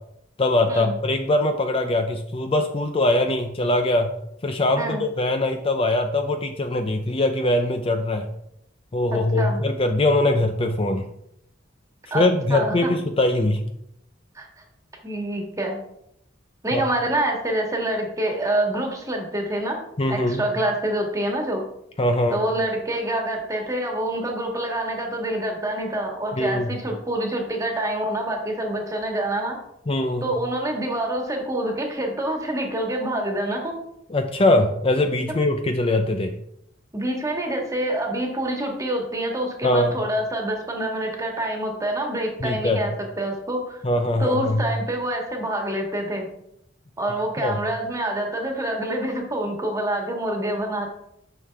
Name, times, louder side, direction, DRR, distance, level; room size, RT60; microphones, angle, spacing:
voice 1, 0.4-4.1 4.4-8.3 8.9-11.1 12.1-13.6 16.7-16.8 20.0-20.4 22.0-22.4 26.3-26.7 29.9-30.3 34.1-36.3 39.6-39.9 42.4-42.8 43.8-44.6 47.4-47.6, left 1 dB, 30° left, 7 dB, 0.5 m, -22 dB
voice 2, 9.1-9.6 12.1-12.9 14.3-14.5 15.0-15.8 16.6-19.8 20.1-21.6 22.3-29.6 30.2-33.8 36.9-43.8 44.2-46.3 47.0-50.9, right 1 dB, 15° right, 1 dB, 1.6 m, -26 dB
9.0 x 6.5 x 3.4 m, 0.77 s
head